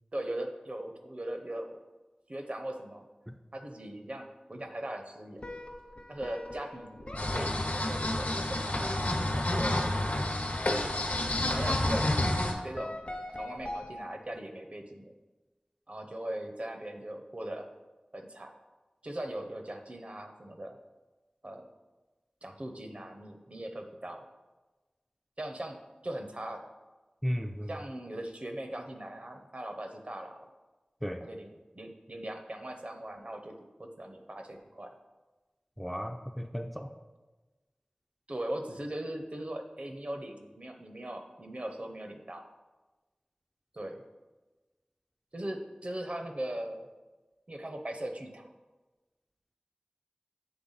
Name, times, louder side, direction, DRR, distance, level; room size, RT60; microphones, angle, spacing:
voice 1, 0.1-1.8 2.3-3.1 3.5-5.4 6.1-7.1 7.3-10.2 11.5-12.1 12.6-13.1 13.4-15.1 15.9-17.7 18.1-18.5 19.0-20.8 21.4-21.7 22.4-24.2 25.4-25.8 26.0-26.7 27.7-30.5 31.2-34.9 38.3-42.5 43.7-44.0 45.3-46.9 47.5-48.5, right 1 dB, 50° right, 4 dB, 0.7 m, -39 dB
sound 1, 5.4-14.4, left 1 dB, 45° left, 0.7 m, -43 dB
sound 2, 7.2-12.5, left 1 dB, 70° left, 0.9 m, -29 dB
voice 2, 27.2-27.7 31.0-31.2 35.8-36.9, equal, ahead, 4 dB, 0.3 m, -34 dB
7.9 x 3.4 x 4.0 m, 1.2 s
wide cardioid pair, 50°, 3 cm